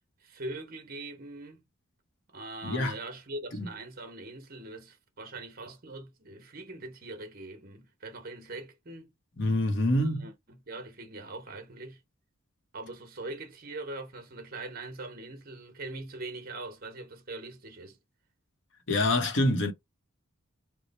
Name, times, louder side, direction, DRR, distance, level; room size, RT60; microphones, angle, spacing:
voice 1, 0.2-1.6 2.3-9.1 9.9-12.0 12.7-18.0, right 2 dB, 45° right, 0.8 m, -42 dB
voice 2, 2.6-3.0 3.5-3.7 9.4-10.2 18.9-19.7, left 1 dB, 60° left, 0.8 m, -26 dB
3.1 x 2.1 x 4.0 m
head